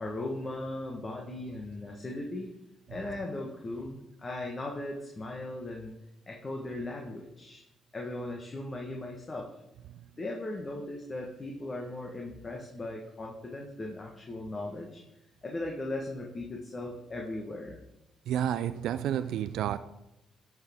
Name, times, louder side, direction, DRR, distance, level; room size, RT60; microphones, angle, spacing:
voice 1, 0.0-2.5 2.9-5.9 6.3-7.6 7.9-9.5 10.2-15.0 15.4-17.8, left 2 dB, 30° left, 0 dB, 1.3 m, -38 dB
voice 2, 18.3-19.8, right 10 dB, 80° right, 11 dB, 0.3 m, -30 dB
10.5 x 6.1 x 3.6 m, 0.91 s
cardioid pair, 90°, 0 cm